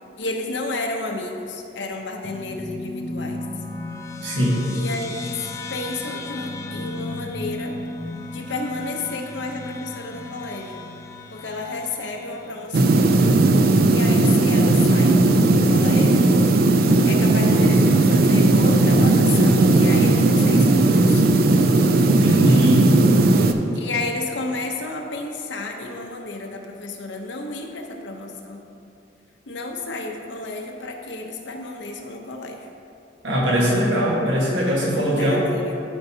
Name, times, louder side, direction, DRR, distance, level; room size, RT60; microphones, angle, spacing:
voice 1, 0.2-3.4 4.7-5.4 5.7-7.8 8.3-10.8 11.3-13.1 13.9-16.4 17.0-21.2 23.7-28.6 29.5-32.6 35.1-35.8, left 2 dB, 80° left, 2 dB, 0.8 m, -31 dB
sound 1, 2.2-13.0, left 2 dB, 15° left, 0.4 m, -35 dB
voice 2, 4.2-4.6 22.1-22.9 33.2-35.4, equal, 85° right, -4 dB, 1.6 m, -21 dB
sound 2, 12.7-23.5, right 2 dB, 55° right, 0.4 m, -16 dB
11.5 x 5.3 x 2.8 m, 2.6 s
head